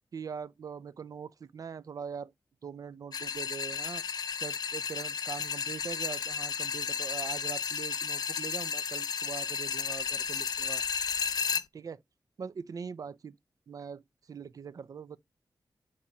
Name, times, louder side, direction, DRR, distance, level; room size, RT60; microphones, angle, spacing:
voice 1, 0.1-2.3 2.6-4.0 4.4-10.8 11.7-12.0 12.4-13.3 13.7-15.2, right 6 dB, 55° right, 0.5 m, -42 dB
sound 1, 3.1-11.6, left 6 dB, 65° left, 0.5 m, -33 dB
7.1 x 3.0 x 4.8 m
wide cardioid pair, 165°, 7 cm